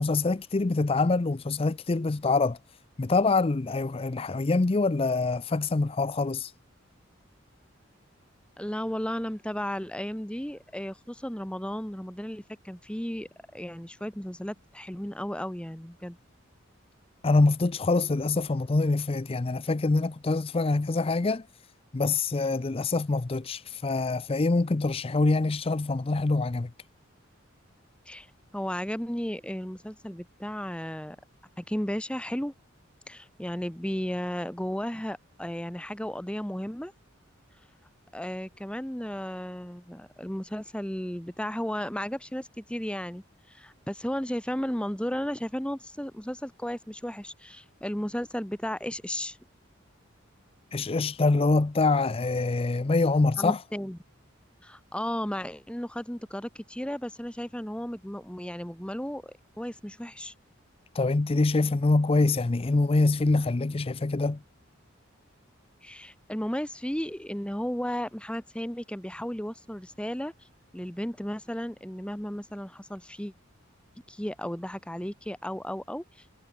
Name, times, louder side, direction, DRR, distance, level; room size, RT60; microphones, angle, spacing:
voice 1, 0.0-2.6 3.0-6.5 17.2-21.4 21.9-26.7 50.7-53.6 60.9-64.4, left 3 dB, 30° left, 0.5 m, -25 dB
voice 2, 8.6-16.2 28.1-28.3 28.5-31.2 31.6-32.5 33.1-36.9 38.1-49.4 53.4-54.0 54.6-60.3 65.8-70.3 70.7-73.3 74.1-76.0, equal, 5° left, 1.2 m, -34 dB
head